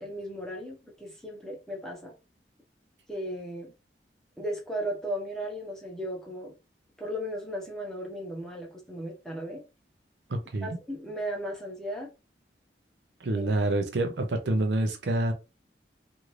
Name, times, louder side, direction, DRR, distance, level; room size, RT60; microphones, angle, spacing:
voice 1, 0.0-2.1 3.1-3.7 4.4-6.5 7.0-9.6 10.6-12.1 13.4-13.5, equal, 5° left, 0.8 m, -36 dB
voice 2, 10.3-10.7 13.2-15.3, right 2 dB, 75° right, 0.6 m, -27 dB
2.6 x 2.5 x 3.1 m
head